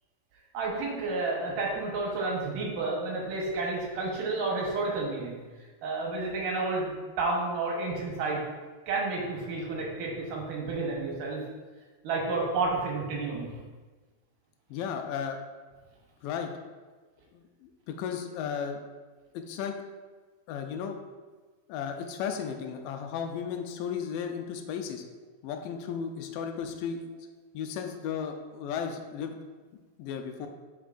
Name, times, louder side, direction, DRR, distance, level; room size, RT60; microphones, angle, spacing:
voice 1, 0.5-5.4 5.8-6.9 7.2-8.4 8.9-11.4 12.0-13.6, right 3 dB, 75° right, -2 dB, 2.6 m, -30 dB
voice 2, 14.7-15.4 16.2-16.5 17.3-18.8 19.3-19.8 20.5-21.0 21.7-25.0 25.4-27.0 27.5-29.4 30.0-30.5, left 7 dB, 80° left, 5 dB, 2.2 m, -34 dB
7.2 x 5.5 x 2.5 m, 1.3 s
omnidirectional pair, 3.9 m